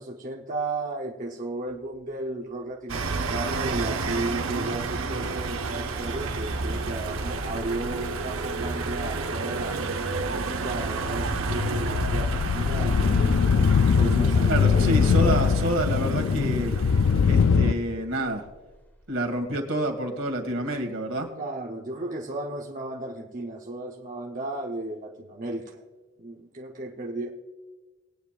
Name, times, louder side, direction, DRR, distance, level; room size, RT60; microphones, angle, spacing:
voice 1, 0.0-9.8 10.3-13.3 14.0-15.4 21.3-25.8 26.2-27.3, right 2 dB, 40° right, -2 dB, 0.8 m, -34 dB
sound 1, 1.7-2.2 2.6-10.9 11.2-11.3 13.6-19.5, left 1 dB, 10° left, 1.1 m, -50 dB
sound 2, 2.9-17.6, right 3 dB, 90° right, 0.8 m, -31 dB
sound 3, 10.9-17.7, left 5 dB, 70° left, 0.4 m, -22 dB
voice 2, 14.5-16.8 17.3-18.4 19.1-21.3, right 1 dB, 70° right, 3 dB, 1.9 m, -28 dB
20.5 x 9.1 x 2.4 m, 1.2 s
head